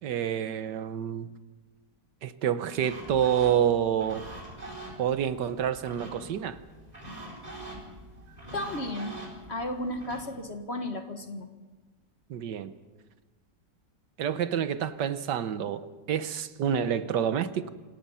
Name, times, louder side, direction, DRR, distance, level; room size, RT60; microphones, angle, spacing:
voice 1, 0.0-1.3 2.2-4.3 5.0-6.6 12.3-12.7 14.2-17.7, right 9 dB, 75° right, 12 dB, 1.5 m, -28 dB
sound 1, 2.8-10.2, right 1 dB, 20° right, 4.7 m, -44 dB
voice 2, 8.5-9.2 9.5-11.5, left 1 dB, 40° left, 6 dB, 1.7 m, -34 dB
26.5 x 18.0 x 5.6 m, 1.2 s
omnidirectional pair, 1.9 m